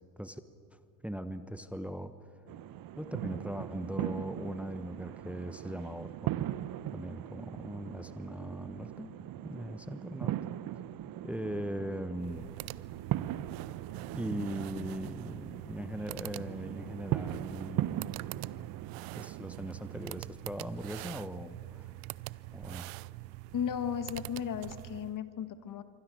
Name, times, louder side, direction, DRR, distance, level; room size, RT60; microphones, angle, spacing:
voice 1, 0.7-2.3 3.0-6.3 6.9-9.1 9.4-10.4 10.7-10.8 11.2-12.5 14.1-18.2 18.5-18.7 19.2-21.9 22.5-22.9, equal, 5° right, 11 dB, 1.2 m, -40 dB
sound 1, 2.5-20.2, right 13 dB, 55° right, 0.8 m, -39 dB
sound 2, 12.1-25.2, right 21 dB, 80° right, 0.6 m, -44 dB
voice 2, 23.5-25.8, left 8 dB, 50° left, 10 dB, 1.7 m, -35 dB
26.5 x 24.5 x 6.4 m, 2.5 s
hypercardioid pair, 65°, 41 cm